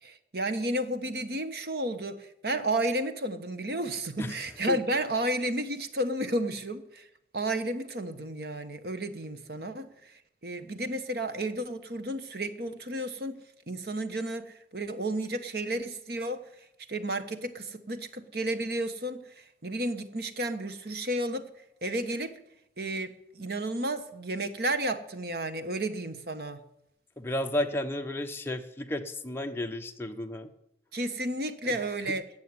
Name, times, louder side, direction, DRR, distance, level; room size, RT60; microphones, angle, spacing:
voice 1, 0.0-7.1 7.3-13.4 13.7-16.4 16.9-21.5 21.8-22.4 22.8-26.6 30.9-32.2, right 1 dB, 55° right, 9 dB, 1.2 m, -32 dB
voice 2, 4.2-4.8 27.2-30.5, left 1 dB, 15° left, 4 dB, 1.0 m, -33 dB
16.5 x 6.9 x 9.7 m, 0.81 s
head